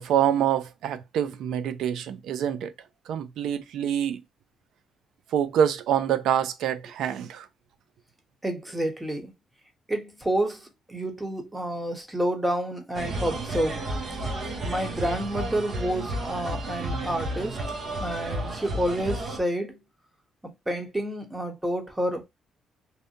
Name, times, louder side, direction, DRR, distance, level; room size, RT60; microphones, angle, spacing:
voice 1, 0.0-2.7 3.1-4.2 5.3-7.5, right 9 dB, 80° right, 0.4 m, -26 dB
voice 2, 8.4-9.3 9.9-13.9 14.6-17.6 18.0-19.8 20.4-22.3, right 1 dB, 10° right, 0.9 m, -29 dB
sound 1, 12.9-19.4, right 1 dB, 55° right, 0.9 m, -32 dB
2.7 x 2.1 x 2.6 m
cardioid pair, 90°, 0 cm